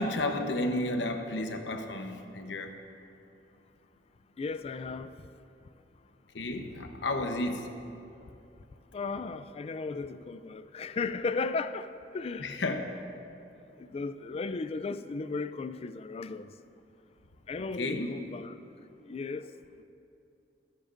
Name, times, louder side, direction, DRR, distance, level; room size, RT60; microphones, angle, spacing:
voice 1, 0.0-2.7 6.3-7.7 12.4-12.8 17.8-18.1, left 2 dB, 85° left, 1.0 m, -32 dB
voice 2, 4.4-5.2 8.9-12.6 13.8-16.5 17.5-18.6 19.0-19.5, left 4 dB, 35° left, 0.3 m, -35 dB
26.5 x 10.0 x 2.6 m
head